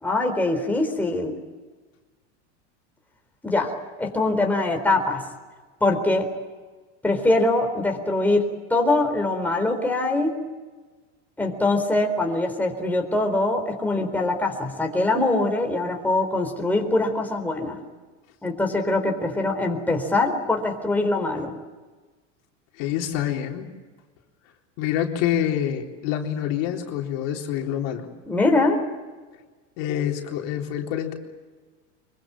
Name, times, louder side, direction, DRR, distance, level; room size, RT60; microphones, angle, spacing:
voice 1, 0.0-1.3 3.4-3.7 4.0-5.2 5.8-6.3 7.0-10.3 11.4-17.8 18.4-21.5 28.3-28.8, left 2 dB, 5° left, 2 dB, 4.0 m, -23 dB
voice 2, 22.8-23.7 24.8-28.1 29.8-31.1, left 10 dB, 60° left, 1 dB, 3.9 m, -26 dB
25.0 x 23.5 x 8.8 m, 1.3 s
supercardioid pair, 135°, 36 cm